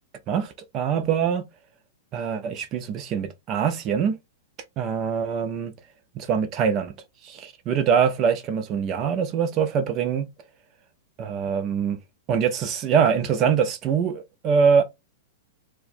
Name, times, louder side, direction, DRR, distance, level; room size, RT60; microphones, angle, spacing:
voice 1, 0.3-1.4 2.1-4.2 4.8-5.7 6.1-6.9 7.2-10.3 11.2-12.0 12.3-14.8, right 7 dB, 35° right, 0.6 m, -23 dB
4.4 x 2.2 x 2.5 m
hypercardioid pair, 125°, 0 cm